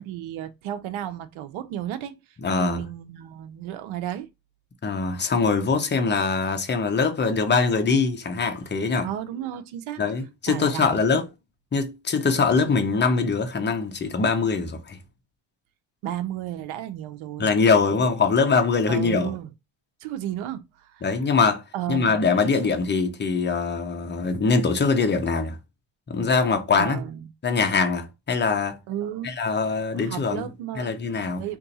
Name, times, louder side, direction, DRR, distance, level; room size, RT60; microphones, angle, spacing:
voice 1, 0.0-4.3 9.0-10.0 10.5-11.2 16.0-17.5 18.0-18.1 18.9-19.5 20.0-21.1 21.7-22.5 26.7-27.3 28.9-29.4 30.0-30.9 31.4-31.6, right 11 dB, 85° right, 0.7 m, -33 dB
voice 2, 2.4-2.8 4.8-9.1 10.0-11.3 11.7-15.0 17.4-19.3 21.0-25.6 26.1-27.0 27.4-28.8 29.2-30.5 30.7-31.4, left 4 dB, 25° left, 0.7 m, -23 dB
2.7 x 2.6 x 4.0 m
cardioid pair, 100°, 47 cm